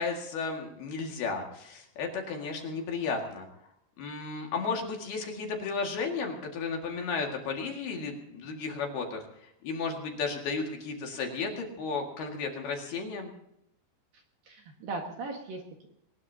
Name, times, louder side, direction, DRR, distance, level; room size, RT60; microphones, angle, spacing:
voice 1, 0.0-3.5 4.0-13.3, left 4 dB, 60° left, 1 dB, 3.6 m, -34 dB
voice 2, 14.1-15.9, right 3 dB, 60° right, 2 dB, 2.8 m, -39 dB
22.5 x 19.5 x 2.8 m, 0.79 s
omnidirectional pair, 5.7 m